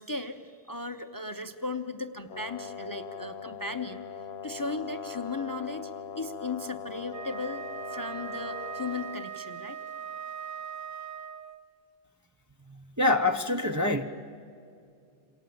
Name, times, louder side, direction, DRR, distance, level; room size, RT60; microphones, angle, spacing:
voice 1, 0.0-4.0 4.4-9.8, left 3 dB, 20° left, 8 dB, 0.8 m, -36 dB
Brass instrument, 2.3-9.3, left 7 dB, 65° left, 1.1 m, -41 dB
Wind instrument woodwind instrument, 7.0-11.7, right 8 dB, 50° right, 0.9 m, -40 dB
voice 2, 13.0-14.0, left 2 dB, 15° right, 4 dB, 0.8 m, -25 dB
27.5 x 27.5 x 7.8 m, 2.4 s
omnidirectional pair, 1.2 m